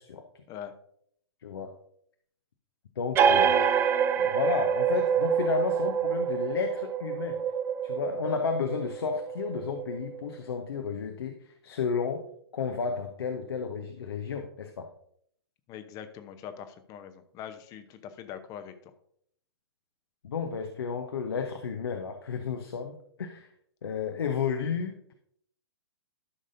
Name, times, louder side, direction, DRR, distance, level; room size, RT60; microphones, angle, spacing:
voice 1, 1.4-1.7 3.0-3.7 4.2-7.4 7.8-12.2 12.5-14.9 20.2-23.5 23.8-25.1, left 6 dB, 65° left, 5 dB, 0.8 m, -32 dB
sound 1, 3.1-10.4, right 7 dB, 15° right, 0.4 m, -27 dB
voice 2, 15.7-18.9, left 9 dB, 25° left, 10 dB, 0.8 m, -43 dB
13.0 x 6.3 x 2.6 m, 0.67 s
figure-of-eight pair, 115°, 14 cm